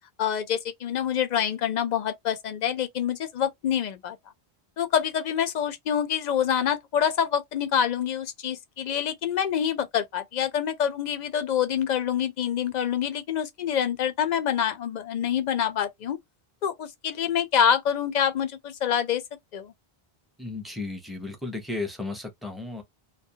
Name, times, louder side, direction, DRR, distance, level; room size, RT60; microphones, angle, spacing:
voice 1, 0.2-4.2 4.8-16.2 16.6-19.2 19.5-19.7, left 8 dB, 55° left, 0.5 m, -26 dB
voice 2, 20.4-22.8, left 3 dB, ahead, 0.4 m, -34 dB
2.2 x 2.1 x 2.7 m
omnidirectional pair, 1.1 m